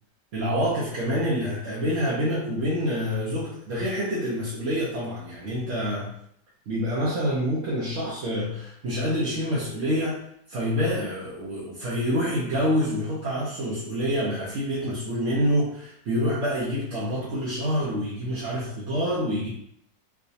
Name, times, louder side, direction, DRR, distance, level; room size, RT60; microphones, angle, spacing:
voice 1, 0.3-6.1 6.7-19.5, equal, 55° right, -7 dB, 0.9 m, -27 dB
4.7 x 2.2 x 2.7 m, 0.71 s
omnidirectional pair, 1.9 m